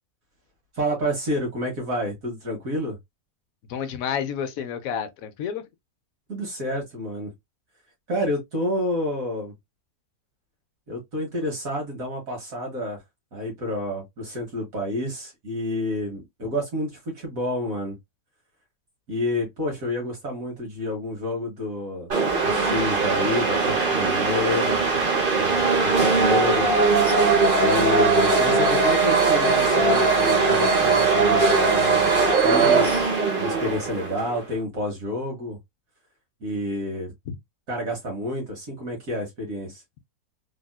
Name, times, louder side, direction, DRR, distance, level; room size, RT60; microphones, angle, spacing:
voice 1, 0.7-3.0 6.3-7.3 8.1-9.5 10.9-13.0 13.3-18.0 19.1-22.1 22.4-24.8 25.4-26.7 27.6-32.9 33.4-35.6 36.4-37.1 37.7-39.8, left 1 dB, 60° right, 1.6 m, -29 dB
voice 2, 3.7-5.6 37.3-37.4, left 8 dB, 70° left, 0.9 m, -30 dB
sound 1, 22.1-34.4, right 4 dB, 40° right, 1.1 m, -20 dB
3.4 x 2.6 x 2.2 m
omnidirectional pair, 1.6 m